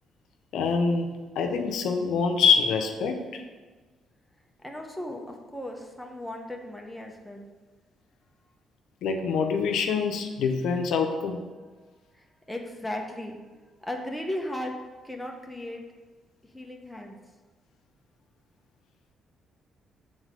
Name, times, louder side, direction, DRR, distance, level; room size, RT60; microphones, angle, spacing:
voice 1, 0.5-1.1 1.4-3.4 9.0-11.4, left 5 dB, 80° left, 4 dB, 0.7 m, -25 dB
voice 2, 4.6-7.5 12.5-13.3 13.8-14.7 15.0-15.8 16.5-17.2, left 1 dB, 5° left, 1 dB, 1.0 m, -36 dB
7.2 x 3.6 x 5.1 m, 1.3 s
cardioid pair, 90°, 0 cm